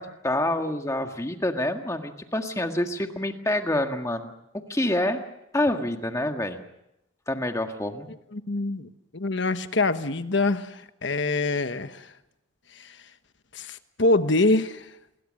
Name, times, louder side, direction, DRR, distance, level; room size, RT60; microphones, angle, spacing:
voice 1, 0.0-4.3 4.7-5.2 5.5-6.6 7.3-8.1, left 1 dB, 15° left, 5 dB, 1.7 m, -27 dB
voice 2, 8.3-12.1 12.8-12.9 13.5-14.8, left 2 dB, 55° left, 10 dB, 1.3 m, -25 dB
28.0 x 22.0 x 6.5 m, 0.85 s
head